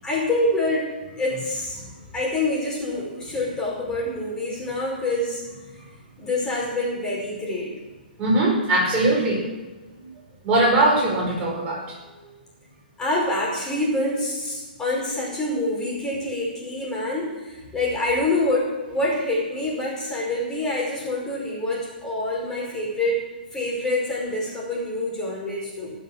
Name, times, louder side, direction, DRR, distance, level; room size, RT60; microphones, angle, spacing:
voice 1, 0.0-1.8 2.1-5.4 6.2-7.7 12.1-12.4 13.0-23.2 23.5-25.9, left 1 dB, 10° left, -4 dB, 5.1 m, -26 dB
voice 2, 8.2-9.4 10.4-11.8, right 2 dB, 25° right, -2 dB, 5.1 m, -20 dB
19.5 x 7.0 x 7.3 m, 1.2 s
hypercardioid pair, 140°, 5 cm